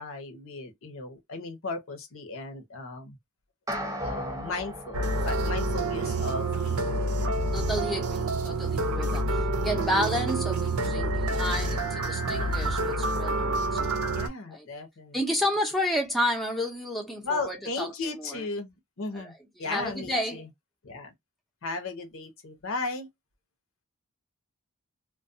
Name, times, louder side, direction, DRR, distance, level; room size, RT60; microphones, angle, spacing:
voice 1, 0.0-3.2 4.0-7.4 9.0-9.5 14.1-15.2 17.2-19.3 19.6-20.5 20.8-21.1 21.6-23.1, left 3 dB, 60° left, 0.7 m, -36 dB
sound 1, 3.7-6.2, equal, 15° right, 0.9 m, -36 dB
sound 2, 4.9-14.3, right 2 dB, 75° right, 0.6 m, -28 dB
voice 2, 7.5-14.0 14.5-14.7 15.1-18.4 19.1-19.3 19.6-20.5, equal, ahead, 0.5 m, -31 dB
2.2 x 2.2 x 2.6 m
head